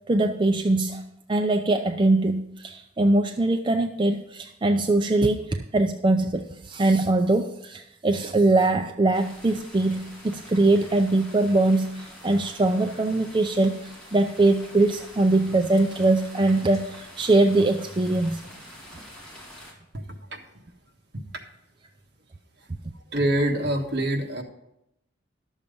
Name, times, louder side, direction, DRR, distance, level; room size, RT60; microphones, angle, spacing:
voice 1, 0.1-1.0 1.3-18.4, right 2 dB, 25° right, 5 dB, 0.4 m, -22 dB
sound 1, 9.1-19.7, equal, 5° left, 2.3 m, -46 dB
voice 2, 23.1-24.4, right 1 dB, 60° right, 2 dB, 1.5 m, -24 dB
11.5 x 7.2 x 5.3 m, 0.83 s
head